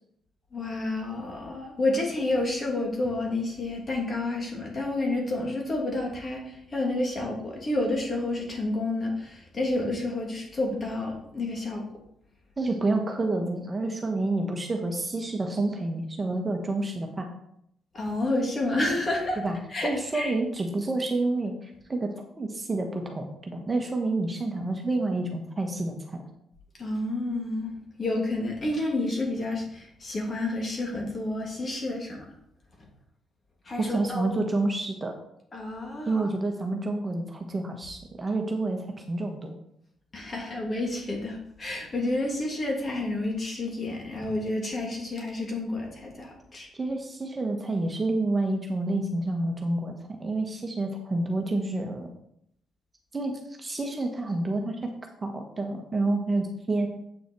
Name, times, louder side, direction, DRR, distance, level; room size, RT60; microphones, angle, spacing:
voice 1, 0.5-11.8 17.9-19.4 19.7-20.3 26.8-27.7 28.0-32.2 33.6-34.3 35.5-36.3 40.1-46.7, left 2 dB, 35° left, 0 dB, 2.8 m, -30 dB
voice 2, 12.6-17.3 19.4-19.6 19.8-26.2 33.8-35.1 36.1-39.5 46.7-52.1 53.1-53.3 53.6-54.8 55.2-56.9, right 2 dB, 25° right, 3 dB, 1.3 m, -29 dB
8.2 x 6.2 x 4.6 m, 0.75 s
cardioid pair, 90°, 0 cm